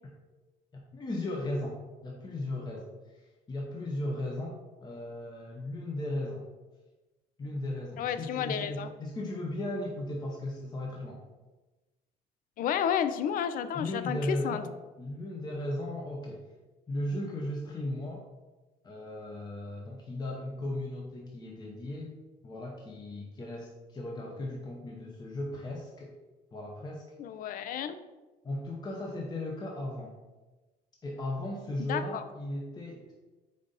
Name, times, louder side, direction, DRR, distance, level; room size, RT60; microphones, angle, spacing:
voice 1, 0.7-6.5 7.4-11.2 13.7-16.5 16.9-18.2 18.8-22.2 22.4-26.1 26.5-27.0 28.4-30.1 31.0-33.1, left 1 dB, 25° left, -1 dB, 0.7 m, -36 dB
voice 2, 8.0-8.9 12.6-14.6 27.2-28.0 31.9-32.2, left 9 dB, 55° left, 10 dB, 0.4 m, -31 dB
5.1 x 2.6 x 3.9 m, 1.1 s
cardioid pair, 110°, 17 cm